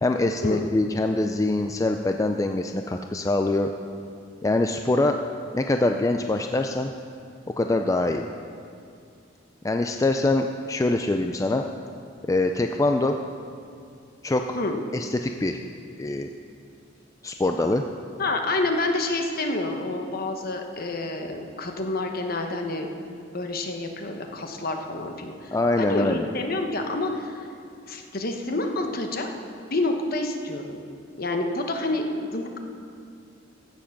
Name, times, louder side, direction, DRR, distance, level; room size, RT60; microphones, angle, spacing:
voice 1, 0.0-3.7 4.4-5.2 5.5-6.9 7.6-8.2 9.6-11.6 12.3-13.2 14.2-14.6 14.9-15.6 16.0-16.3 17.2-17.8 25.5-26.3, left 2 dB, 15° left, 5 dB, 0.4 m, -24 dB
voice 2, 18.2-22.9 23.3-25.5 25.8-27.5 27.9-29.3 29.7-30.8 31.2-32.6, left 2 dB, 50° left, 4 dB, 1.1 m, -28 dB
15.5 x 7.4 x 6.0 m, 2.4 s
head